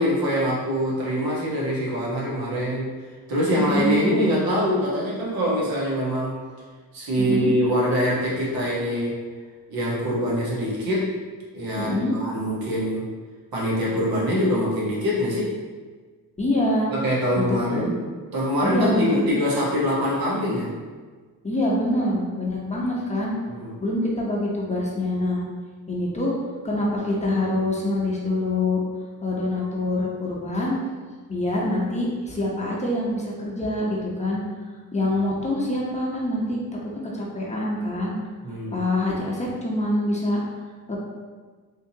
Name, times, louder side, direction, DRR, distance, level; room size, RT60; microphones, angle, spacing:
voice 1, 0.0-2.9 3.3-6.4 6.9-9.2 9.7-11.1 11.5-13.1 13.5-15.5 16.9-17.9 18.3-20.7 23.5-23.8 38.4-38.8, equal, 75° right, -6 dB, 1.4 m, -24 dB
voice 2, 3.6-4.1 7.2-7.5 11.8-12.1 16.4-16.9 17.4-17.9 18.6-19.3 21.4-23.3 23.8-25.4 25.9-26.3 26.6-28.8 29.2-30.7 31.3-34.4 34.9-36.6 36.9-38.1 38.7-40.4 40.9-41.0, left 1 dB, 20° left, -4 dB, 0.9 m, -25 dB
3.6 x 2.9 x 2.8 m, 1.5 s
cardioid pair, 80°, 36 cm